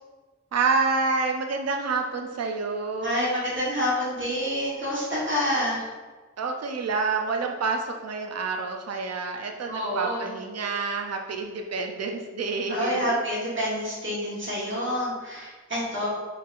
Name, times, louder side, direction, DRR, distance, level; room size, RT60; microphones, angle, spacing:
voice 1, 0.5-3.3 6.4-13.1, right 4 dB, 55° right, 3 dB, 0.4 m, -28 dB
voice 2, 3.0-5.9 9.7-10.3 12.7-16.1, equal, 40° right, -6 dB, 1.2 m, -28 dB
4.3 x 3.3 x 2.4 m, 1.3 s
wide cardioid pair, 55°, 30 cm